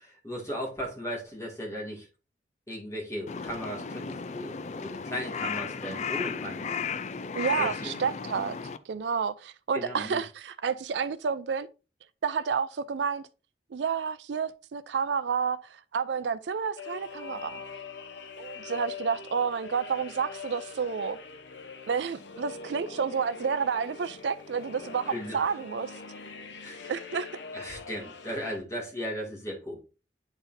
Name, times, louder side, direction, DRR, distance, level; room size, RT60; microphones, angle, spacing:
voice 1, 0.0-2.1 2.7-6.8 7.6-7.9 9.7-10.2 25.1-25.4 26.6-26.9 27.5-29.8, equal, 15° left, 2.2 m, -37 dB
Crow, 3.3-8.8, left 6 dB, 40° left, 0.4 m, -35 dB
voice 2, 7.3-8.6 8.9-11.7 12.2-13.3 13.7-17.6 18.4-21.2 21.9-25.9 26.9-27.3, right 6 dB, 80° right, 0.4 m, -30 dB
sound 1, 16.8-28.6, left 4 dB, 85° left, 0.7 m, -43 dB
10.0 x 4.0 x 2.6 m
head